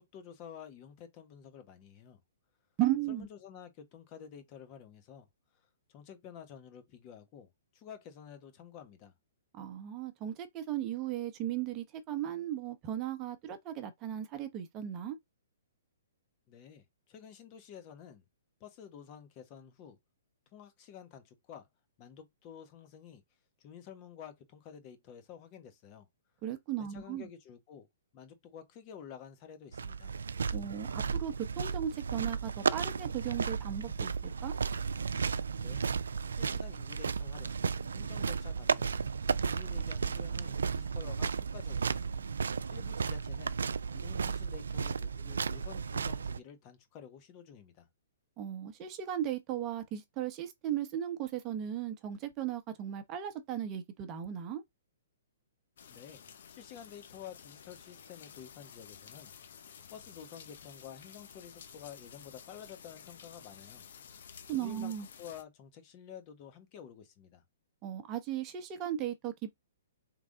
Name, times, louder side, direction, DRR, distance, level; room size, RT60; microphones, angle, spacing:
voice 1, 0.0-2.2 3.1-5.3 5.9-9.1 16.5-18.2 18.6-20.0 20.5-21.7 22.0-23.2 23.6-26.1 26.9-27.9 28.1-30.1 35.6-35.9 36.3-37.6 37.9-39.0 39.4-42.1 42.4-43.6 43.9-47.9 55.8-56.2 56.5-59.3 59.9-63.8 64.6-64.9 65.2-67.4, left 8 dB, 35° left, 1.2 m, -50 dB
voice 2, 2.8-3.3 9.5-15.2 26.4-27.3 30.5-34.5 48.4-54.6 64.5-65.1 67.8-69.5, right 11 dB, 30° right, 0.8 m, -36 dB
sound 1, 29.7-46.4, right 5 dB, 85° right, 0.4 m, -34 dB
sound 2, 55.8-65.4, left 7 dB, 65° left, 0.8 m, -53 dB
3.8 x 3.3 x 3.8 m
hypercardioid pair, 140°, 0 cm